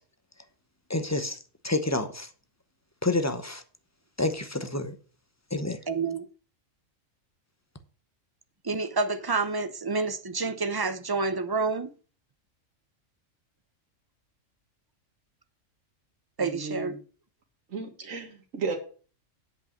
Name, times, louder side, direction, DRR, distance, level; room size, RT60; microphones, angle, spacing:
voice 1, 0.9-1.4 1.6-2.3 3.0-3.6 4.2-4.9 5.5-5.8, left 2 dB, 15° left, 0.7 m, -28 dB
voice 2, 5.9-6.3 8.6-11.9 16.4-17.0, right 4 dB, 25° right, 0.5 m, -28 dB
voice 3, 16.4-17.0 17.7-18.8, right 4 dB, 80° right, 2.0 m, -34 dB
8.2 x 5.4 x 7.2 m
omnidirectional pair, 1.4 m